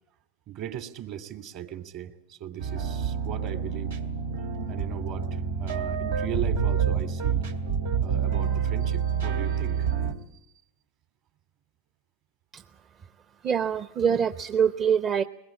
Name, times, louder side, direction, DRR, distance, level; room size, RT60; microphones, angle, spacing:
voice 1, 0.5-4.0 4.7-7.5 8.0-9.9, right 10 dB, 50° right, 8 dB, 2.7 m, -38 dB
sound 1, 2.6-10.1, right 6 dB, 85° right, 2.4 m, -28 dB
voice 2, 13.4-15.2, right 7 dB, 30° right, 11 dB, 0.8 m, -24 dB
22.0 x 20.0 x 8.6 m, 0.81 s
hypercardioid pair, 105°, 0 cm